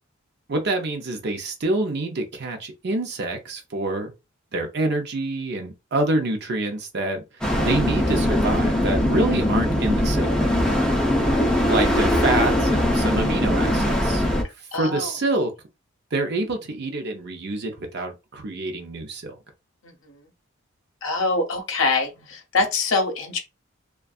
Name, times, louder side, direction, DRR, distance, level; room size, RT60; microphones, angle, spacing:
voice 1, 0.5-4.1 4.5-7.2 7.6-10.3 11.6-14.3 14.7-15.5 16.1-19.4, right 2 dB, 50° right, 0.5 m, -26 dB
sound 1, 7.4-14.4, left 1 dB, 5° left, 0.5 m, -21 dB
voice 2, 14.7-15.1 21.0-23.4, left 3 dB, 65° left, 0.7 m, -24 dB
2.5 x 2.3 x 2.3 m
head